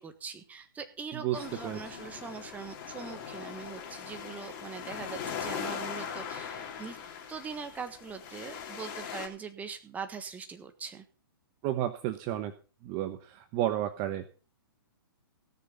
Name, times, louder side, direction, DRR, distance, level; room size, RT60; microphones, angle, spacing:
voice 1, 0.0-7.0 7.3-11.0, right 5 dB, 10° right, 8 dB, 1.4 m, -42 dB
sound 1, 1.3-9.3, left 7 dB, 40° left, 3.0 m, -40 dB
voice 2, 11.6-12.5 12.8-14.3, right 13 dB, 30° right, 10 dB, 1.0 m, -31 dB
17.0 x 6.7 x 5.5 m, 0.38 s
hypercardioid pair, 135°, 12 cm